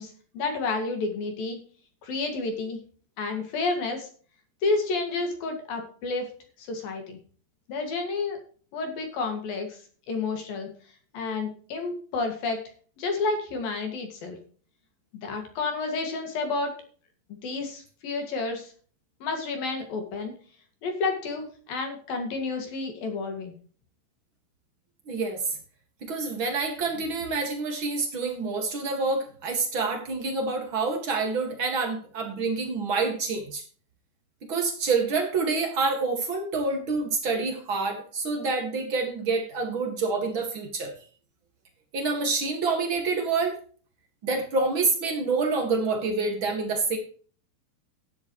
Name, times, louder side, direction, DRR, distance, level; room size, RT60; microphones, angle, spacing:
voice 1, 0.0-1.6 2.0-2.8 3.2-4.1 4.6-6.3 6.6-7.2 7.7-8.4 8.7-9.8 10.1-10.7 11.1-12.6 13.0-14.4 15.2-16.7 17.4-18.7 19.2-20.3 20.8-23.6, left 3 dB, 55° left, 4 dB, 3.5 m, -30 dB
voice 2, 25.1-25.6 26.1-33.6 34.5-40.9 41.9-43.6 44.2-47.0, right 4 dB, 70° right, 3 dB, 1.1 m, -27 dB
13.0 x 10.5 x 3.1 m, 0.42 s
omnidirectional pair, 5.6 m